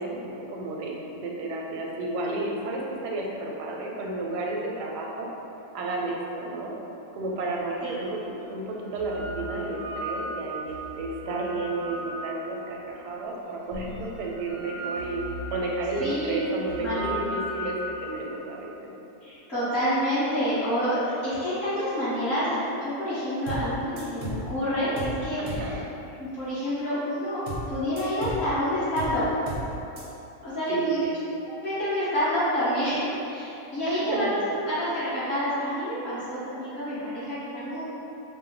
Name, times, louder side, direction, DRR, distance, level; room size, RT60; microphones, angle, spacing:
voice 1, 0.0-5.3 5.7-6.8 7.1-15.2 15.5-18.9 25.4-25.8 30.7-31.1 33.9-34.3, right 2 dB, 85° right, -1 dB, 1.2 m, -32 dB
sound 1, 7.6-7.7 8.7-12.9 13.7-18.4, right 1 dB, 70° right, 0.8 m, -37 dB
voice 2, 16.0-16.5 16.8-17.2 19.2-25.8 26.2-27.4 27.7-29.3 30.4-31.0 31.4-37.9, equal, 40° left, -14 dB, 1.6 m, -28 dB
sound 2, 23.5-23.7 24.0-24.4 25.0-25.2 25.5-25.7 27.5-27.7 28.0-28.4 29.0-29.2 29.5-29.7 30.0-30.1, right 3 dB, 45° right, 0.6 m, -34 dB
4.3 x 2.0 x 3.7 m, 3.0 s
omnidirectional pair, 1.7 m